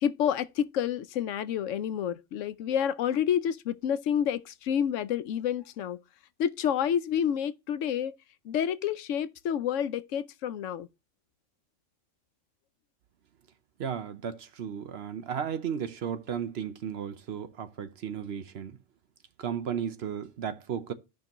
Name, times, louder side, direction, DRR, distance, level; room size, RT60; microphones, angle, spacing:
voice 1, 0.0-6.0 6.4-8.1 8.5-10.9, left 9 dB, 90° left, 1.0 m, -29 dB
voice 2, 13.8-18.8 19.4-20.9, right 8 dB, 60° right, 0.9 m, -34 dB
13.0 x 5.3 x 2.9 m
omnidirectional pair, 1.3 m